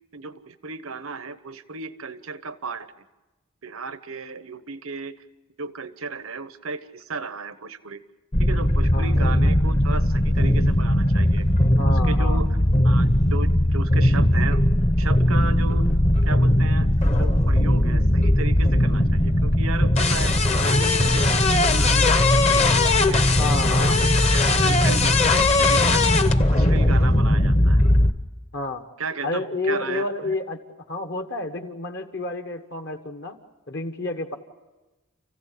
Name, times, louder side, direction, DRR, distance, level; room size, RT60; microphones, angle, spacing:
voice 1, 0.1-2.9 3.6-5.2 5.6-8.0 8.4-11.5 12.0-12.5 12.8-14.7 15.0-15.9 16.3-23.2 23.7-27.8 29.0-30.3, right 4 dB, 85° right, 13 dB, 1.0 m, -35 dB
sound 1, 8.3-28.1, left 1 dB, 30° left, 1.0 m, -19 dB
voice 2, 11.8-12.4 23.4-24.0 28.5-28.8 29.2-30.6 30.9-33.4 33.7-34.4, left 2 dB, 55° left, 7 dB, 1.4 m, -29 dB
29.5 x 15.5 x 8.5 m, 1.1 s
head